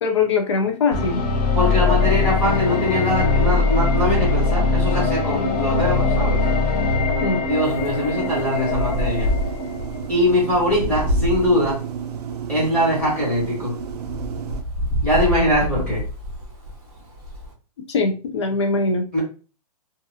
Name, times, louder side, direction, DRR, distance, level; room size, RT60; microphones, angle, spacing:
voice 1, 0.0-1.2 7.2-7.4 17.9-19.0, left 4 dB, 45° left, 4 dB, 0.6 m, -21 dB
sound 1, 0.9-10.0, left 3 dB, 85° left, 1.0 m, -21 dB
voice 2, 1.5-6.4 7.5-9.3 10.1-11.8 12.5-13.7 15.0-16.0 19.1-19.2, left 1 dB, 5° left, -7 dB, 0.9 m, -22 dB
Wind, 7.6-17.5, left 1 dB, 15° right, 0.6 m, -28 dB
sound 2, 8.2-14.6, right 7 dB, 90° right, 0.4 m, -32 dB
2.6 x 2.4 x 2.6 m, 0.35 s
hypercardioid pair, 175°, 20 cm